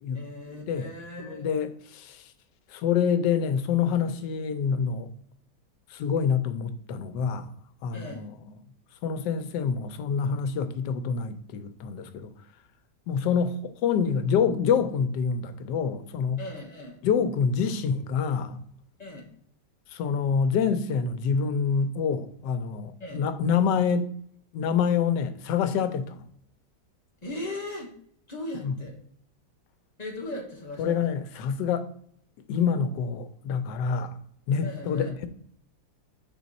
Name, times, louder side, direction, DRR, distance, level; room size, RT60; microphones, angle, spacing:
voice 1, 0.1-1.5 7.9-8.3 16.4-17.0 19.0-19.3 23.0-23.2 27.2-27.9 28.3-29.0 30.0-31.0 34.6-35.1, left 1 dB, 30° left, 1.0 m, -38 dB
voice 2, 1.2-2.2 2.7-5.1 5.9-7.5 7.8-8.3 9.0-12.3 13.1-16.4 17.0-18.6 19.9-24.1 24.5-26.2 28.6-28.7 30.8-31.9 32.5-34.2 34.5-35.3, left 6 dB, 90° left, 1.3 m, -26 dB
6.1 x 4.1 x 4.0 m
omnidirectional pair, 1.8 m